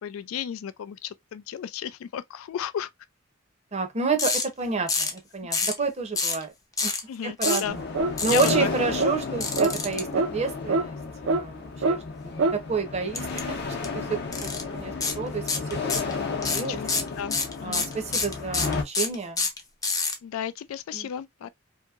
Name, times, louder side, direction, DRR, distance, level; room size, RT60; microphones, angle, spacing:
voice 1, 0.0-2.9 7.1-7.8 8.2-8.7 16.5-16.9 17.2-17.9 20.2-21.5, left 9 dB, 90° left, 0.3 m, -34 dB
voice 2, 3.7-6.5 6.8-6.9 7.2-7.8 8.2-10.1 10.3-11.0 11.2-12.0 12.2-13.2 13.5-13.6 14.1-15.4 15.7-16.1 16.4-16.8 17.6-19.5 20.9-21.1, right 4 dB, 30° right, 0.6 m, -29 dB
sound 1, 4.2-4.4 4.9-5.2 5.5-5.8 6.2-6.4 6.8-7.0 7.4-7.7 8.2-8.5 9.4-10.0 13.1-13.4 13.7-13.9 14.3-14.6 15.0-15.2 15.5-16.1 16.4-20.1, left 4 dB, 15° left, 0.5 m, -26 dB
sound 2, 7.4-7.7 7.9-8.2 8.5-8.7 9.0-9.2 9.6-9.7 10.1-10.3 10.7-10.9 11.3-11.4 11.8-12.0 12.4-12.6, right 3 dB, 75° right, 0.4 m, -24 dB
sound 3, 7.6-18.8, left 4 dB, 55° left, 0.7 m, -33 dB
2.8 x 2.6 x 2.4 m
head